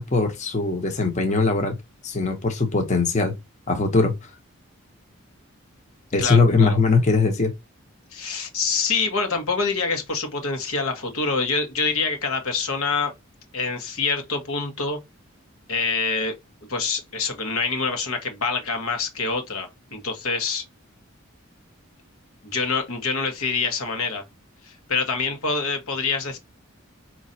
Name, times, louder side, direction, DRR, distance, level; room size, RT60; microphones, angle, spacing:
voice 1, 0.0-1.7 2.0-3.3 3.7-4.1 6.1-7.5, left 3 dB, 35° left, 0.8 m, -20 dB
voice 2, 6.2-6.8 8.1-13.1 13.5-15.0 15.7-16.3 16.7-20.6 22.4-24.2 24.6-26.4, left 4 dB, 90° left, 1.4 m, -26 dB
5.1 x 3.0 x 2.7 m
head